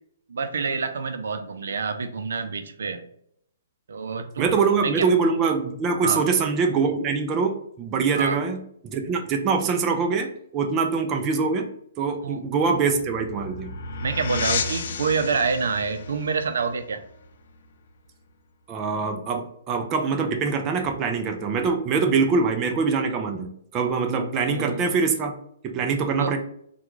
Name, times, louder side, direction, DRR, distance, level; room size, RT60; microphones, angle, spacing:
voice 1, 0.3-3.0 3.9-4.5 4.8-5.1 6.0-6.2 8.2-8.4 12.2-12.4 14.0-17.0 24.4-24.8 26.2-26.3, right 5 dB, 80° right, 8 dB, 0.5 m, -27 dB
voice 2, 4.4-11.7 12.0-13.7 18.7-25.3 25.6-26.4, right 5 dB, 20° right, 4 dB, 0.4 m, -24 dB
sound 1, 12.5-17.9, left 4 dB, 55° left, 0.4 m, -33 dB
3.6 x 2.3 x 3.0 m, 0.68 s
hypercardioid pair, 160°, 0 cm